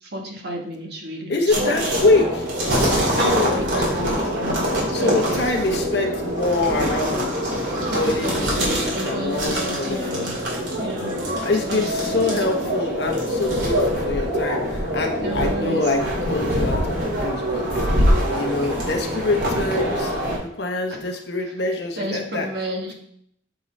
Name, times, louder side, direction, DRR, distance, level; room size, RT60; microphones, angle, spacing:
voice 1, 0.0-1.7 3.0-5.2 5.5-5.8 7.9-10.3 10.6-11.2 11.7-12.2 12.6-12.7 15.2-15.8 22.0-22.9, equal, 60° right, 1 dB, 1.3 m, -31 dB
voice 2, 1.3-2.5 2.9-4.2 4.9-7.2 7.9-10.3 10.5-10.9 11.4-20.1 20.4-22.5, left 3 dB, 65° left, 2 dB, 1.1 m, -25 dB
sound 1, 1.5-20.4, equal, 75° right, 2.5 m, -24 dB
7.7 x 3.8 x 4.2 m, 0.70 s
head